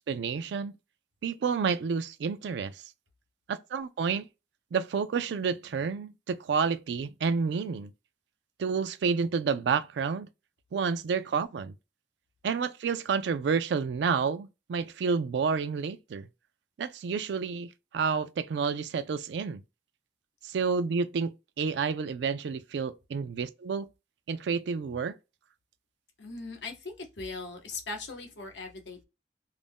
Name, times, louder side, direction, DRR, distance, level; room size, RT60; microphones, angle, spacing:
voice 1, 0.1-0.7 1.2-2.8 3.5-4.3 4.7-7.9 8.6-10.3 10.7-11.7 12.4-16.3 16.8-17.7 17.9-19.6 20.4-23.9 24.3-25.2, right 5 dB, 75° right, 0.3 m, -29 dB
voice 2, 26.2-29.1, left 3 dB, 85° left, 0.8 m, -39 dB
2.5 x 2.1 x 3.5 m
head